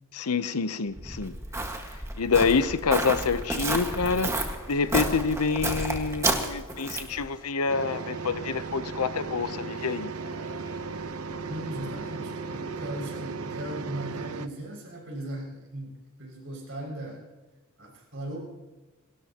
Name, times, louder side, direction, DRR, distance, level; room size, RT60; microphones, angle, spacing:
voice 1, 0.1-1.3 2.2-4.3 4.7-10.1, left 5 dB, 90° left, 13 dB, 0.8 m, -27 dB
Walk footsteps, 0.9-7.2, right 2 dB, 15° right, 1.7 m, -31 dB
sound 1, 3.2-14.4, left 1 dB, 20° left, 3.6 m, -48 dB
sound 2, 7.7-14.5, right 4 dB, 80° right, 0.8 m, -36 dB
voice 2, 11.5-17.2 17.8-18.5, right 1 dB, 60° right, -1 dB, 6.2 m, -38 dB
28.5 x 13.5 x 3.0 m, 1.2 s
head